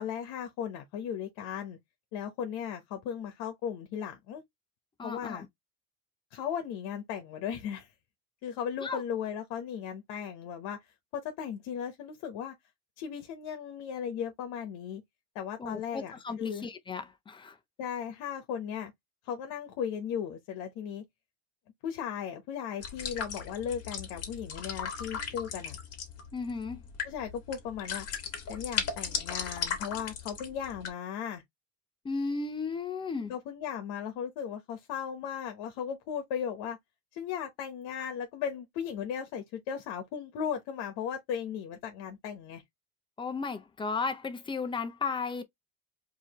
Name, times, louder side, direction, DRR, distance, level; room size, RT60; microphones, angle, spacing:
voice 1, 0.0-1.8 2.1-4.4 5.0-5.5 6.3-7.9 8.4-10.8 11.1-12.5 13.0-15.0 15.3-16.6 17.8-18.9 19.2-21.0 21.8-25.8 27.0-28.1 28.5-31.4 33.3-36.8 37.1-42.6, left 8 dB, 70° left, 1.0 m, -36 dB
voice 2, 5.0-5.5 8.8-9.0 15.6-17.6 26.3-26.8 32.0-33.3 43.2-45.4, left 4 dB, 15° left, 0.4 m, -34 dB
sound 1, 22.8-30.9, left 6 dB, 35° left, 1.6 m, -37 dB
4.7 x 2.8 x 2.9 m
cardioid pair, 160°, 41 cm